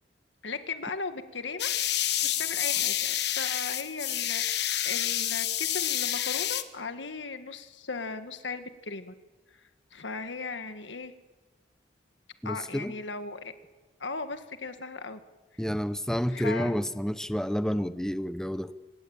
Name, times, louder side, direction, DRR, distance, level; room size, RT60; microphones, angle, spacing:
voice 1, 0.4-1.7 2.2-9.1 9.5-11.1 12.4-13.5 14.0-15.2 15.5-15.6 16.3-16.8, left 4 dB, 85° left, 9 dB, 1.8 m, -37 dB
sound 1, 1.6-6.6, left 12 dB, 65° left, 1.3 m, -29 dB
voice 2, 12.4-12.9 15.6-18.7, equal, 5° left, 12 dB, 0.7 m, -29 dB
25.5 x 19.5 x 8.9 m, 1.2 s
head